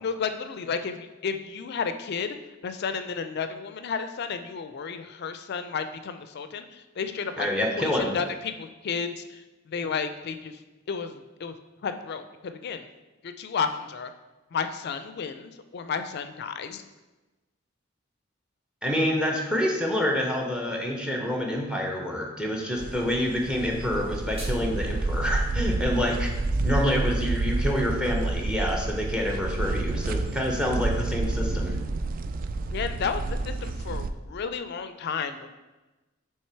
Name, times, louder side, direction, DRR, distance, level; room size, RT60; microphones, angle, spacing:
voice 1, 0.0-2.4 2.6-7.5 7.7-10.6 10.9-11.5 11.8-12.9 13.2-14.1 14.5-16.8 32.7-35.5, left 6 dB, 55° left, 9 dB, 0.4 m, -32 dB
voice 2, 7.4-8.1 18.8-26.3 26.6-31.8, left 1 dB, 5° right, 1 dB, 0.8 m, -27 dB
sound 1, 22.8-34.1, right 2 dB, 45° right, 0.3 m, -29 dB
sound 2, 23.9-24.9, right 1 dB, 30° right, 1.5 m, -44 dB
6.4 x 3.3 x 4.5 m, 1.1 s
head